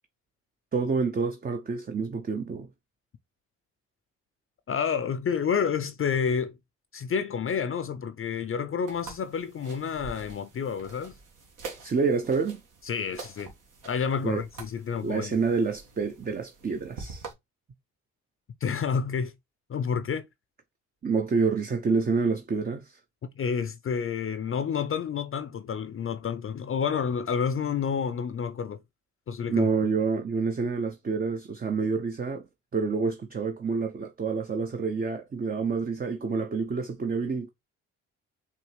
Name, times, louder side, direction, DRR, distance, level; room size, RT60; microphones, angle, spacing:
voice 1, 0.7-2.7 11.8-12.6 14.2-14.4 15.0-17.3 21.0-23.0 29.5-32.4 32.7-37.5, right 4 dB, 30° right, 0.6 m, -28 dB
voice 2, 4.7-6.5 6.9-11.2 12.8-13.5 13.9-15.4 18.6-19.3 19.7-20.2 23.4-28.8 29.3-29.7, left 6 dB, 40° left, 0.6 m, -29 dB
sound 1, 8.9-17.3, right 4 dB, 70° right, 1.5 m, -46 dB
5.1 x 2.8 x 3.2 m
supercardioid pair, 55°, 33 cm